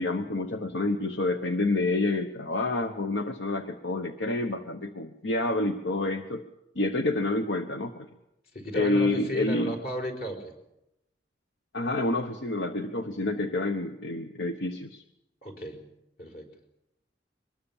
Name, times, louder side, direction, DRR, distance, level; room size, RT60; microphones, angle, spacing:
voice 1, 0.0-6.4 6.7-8.1 8.7-9.7 11.7-15.0, left 2 dB, 85° left, 7 dB, 1.1 m, -28 dB
voice 2, 8.5-10.5 15.4-15.9 16.2-16.5, equal, 55° left, 4 dB, 4.6 m, -34 dB
23.0 x 20.0 x 7.3 m, 0.87 s
head